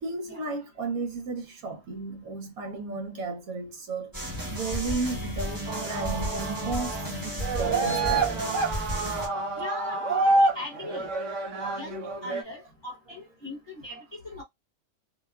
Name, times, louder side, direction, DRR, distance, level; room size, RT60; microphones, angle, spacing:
voice 1, 0.0-4.1 4.5-8.4, right 3 dB, 85° right, 1.3 m, -34 dB
sound 1, 4.1-9.3, equal, 15° right, 1.0 m, -33 dB
sound 2, 5.7-7.1 7.4-12.4, right 3 dB, 65° right, 0.9 m, -28 dB
voice 2, 9.6-11.1 11.8-14.4, left 2 dB, 25° left, 0.7 m, -39 dB
2.7 x 2.3 x 2.2 m
omnidirectional pair, 1.5 m